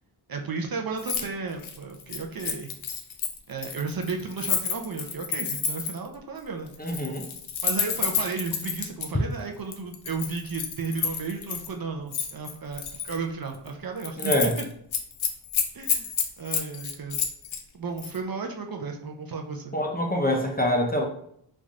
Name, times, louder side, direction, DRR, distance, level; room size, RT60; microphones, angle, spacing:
voice 1, 0.3-2.7 3.5-7.0 7.6-14.5 15.7-16.1 16.4-17.2 17.7-19.8, right 4 dB, 45° right, 3 dB, 0.6 m, -33 dB
Keys jangling, 1.0-1.3 1.5-6.1 6.7-9.1 9.7-11.7 12.1-13.2 13.5-13.7 14.0-14.6 14.9-17.6 18.0-18.2, left 7 dB, 70° left, 0.7 m, -30 dB
voice 2, 6.8-7.3 14.2-14.5 19.7-21.0, equal, 20° left, 1 dB, 0.6 m, -25 dB
3.2 x 2.6 x 3.6 m, 0.68 s
cardioid pair, 65°, 49 cm